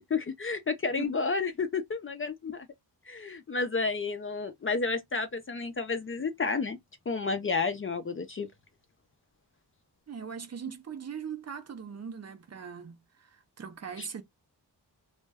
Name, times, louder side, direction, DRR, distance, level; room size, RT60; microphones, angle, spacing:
voice 1, 0.1-2.7 3.1-6.8 7.1-8.5 14.0-14.1, left 4 dB, 35° left, 0.4 m, -31 dB
voice 2, 10.1-14.2, right 7 dB, 40° right, 0.4 m, -40 dB
2.1 x 2.0 x 3.3 m
wide cardioid pair, 130°, 42 cm